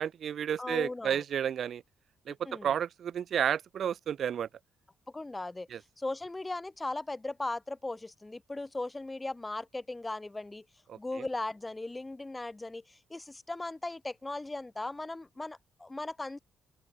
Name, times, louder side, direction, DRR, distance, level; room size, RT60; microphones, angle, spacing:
voice 1, 0.0-1.8 2.3-4.5 5.7-5.8 10.9-11.2, right 9 dB, 60° right, 1.2 m, -32 dB
voice 2, 0.6-1.2 2.3-2.7 5.1-5.7 6.0-10.6 11.0-16.4, left 2 dB, 15° left, 3.9 m, -38 dB
open air
cardioid pair, 90°, 0 cm